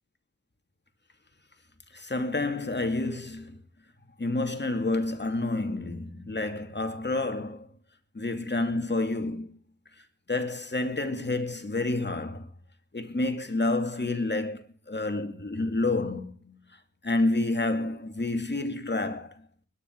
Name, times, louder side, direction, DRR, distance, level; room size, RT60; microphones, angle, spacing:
voice 1, 1.9-3.6 4.2-7.7 8.1-9.6 10.3-12.5 12.9-16.6 17.0-19.5, left 2 dB, 35° left, 2.6 m, -29 dB
21.5 x 10.0 x 4.7 m
cardioid pair, 55°, 31 cm